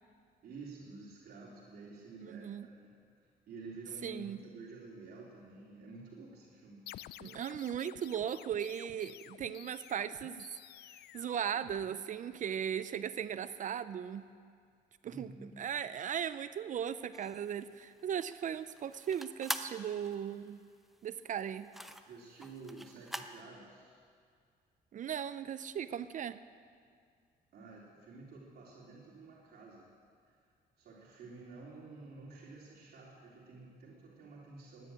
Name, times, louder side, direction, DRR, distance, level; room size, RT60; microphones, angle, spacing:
voice 1, 0.4-6.8 7.1-7.2 15.0-15.6 22.1-24.0 27.5-29.9 30.2-30.4 30.8-34.9, right 3 dB, 65° right, -4 dB, 3.2 m, -51 dB
voice 2, 2.2-2.7 4.0-4.4 7.2-10.5 11.1-14.3 15.0-15.3 15.6-20.6 21.0-21.7 24.9-26.4, right 9 dB, 50° right, 13 dB, 0.5 m, -37 dB
sound 1, 6.9-12.3, left 13 dB, 75° left, 0.4 m, -53 dB
sound 2, 17.1-23.4, equal, ahead, 0.8 m, -44 dB
15.5 x 10.5 x 8.7 m, 2.2 s
cardioid pair, 115°, 17 cm